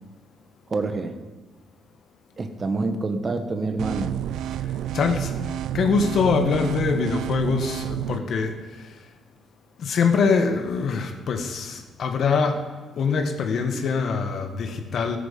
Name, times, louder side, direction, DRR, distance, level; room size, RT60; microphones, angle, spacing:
voice 1, 0.7-1.2 2.4-4.2, right 3 dB, 35° right, 8 dB, 1.3 m, -27 dB
sound 1, 3.8-8.2, right 12 dB, 80° right, 0.3 m, -29 dB
voice 2, 4.9-5.3 5.7-8.6 9.8-12.6 13.0-15.2, left 5 dB, 60° left, 6 dB, 1.5 m, -23 dB
14.0 x 9.1 x 5.5 m, 1.3 s
cardioid pair, 90°, 0 cm